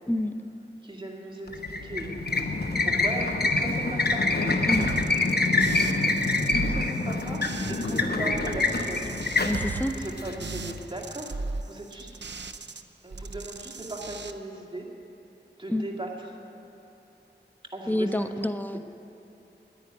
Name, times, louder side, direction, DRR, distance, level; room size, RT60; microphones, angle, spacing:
voice 1, 0.8-2.1 2.8-4.2 5.8-6.1 6.4-7.4 7.7-9.1 9.9-12.1 13.0-14.8 15.6-16.4 17.7-18.1, right 2 dB, 25° right, -1 dB, 2.2 m, -38 dB
sound 1, 1.5-10.8, left 3 dB, 60° left, 1.0 m, -26 dB
sound 2, 4.7-8.0 8.3-12.8 13.1-14.3, right 3 dB, 70° right, 0.5 m, -37 dB
voice 2, 9.4-9.9 15.7-15.9 17.9-18.8, left 1 dB, 10° left, 9 dB, 0.6 m, -27 dB
10.0 x 9.8 x 9.4 m, 2.9 s
wide cardioid pair, 45°, 19 cm